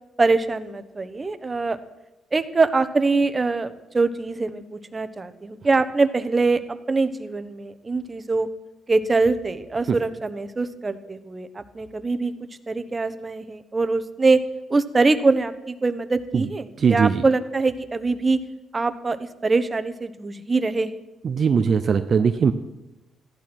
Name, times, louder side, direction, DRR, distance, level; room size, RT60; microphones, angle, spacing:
voice 1, 0.2-1.8 2.3-8.5 8.9-12.3 12.7-14.4 14.7-18.4 18.7-21.0, right 3 dB, 30° right, 11 dB, 1.1 m, -23 dB
voice 2, 16.8-17.2 21.2-22.5, right 6 dB, 55° right, 8 dB, 0.7 m, -19 dB
14.5 x 11.5 x 6.1 m, 0.97 s
cardioid pair, 70°, 0 cm